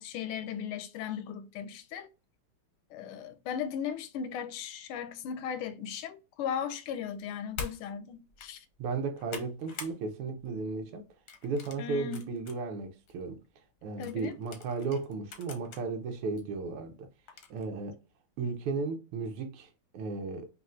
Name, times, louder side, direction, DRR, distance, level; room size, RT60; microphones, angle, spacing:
voice 1, 0.0-2.1 2.9-8.6 11.8-12.2 14.0-14.3, left 8 dB, 85° left, 1.5 m, -37 dB
sound 1, 7.5-7.8 8.3-8.5 8.9-10.0 10.3-10.6 11.3-12.6 13.1-13.2 14.0-15.8 16.4-16.5 17.3-17.6, left 5 dB, 60° left, 1.1 m, -44 dB
voice 2, 8.8-11.0 11.4-13.4 13.8-17.1 17.5-18.0 18.4-20.5, right 4 dB, 90° right, 1.7 m, -35 dB
5.3 x 2.9 x 2.4 m
omnidirectional pair, 2.4 m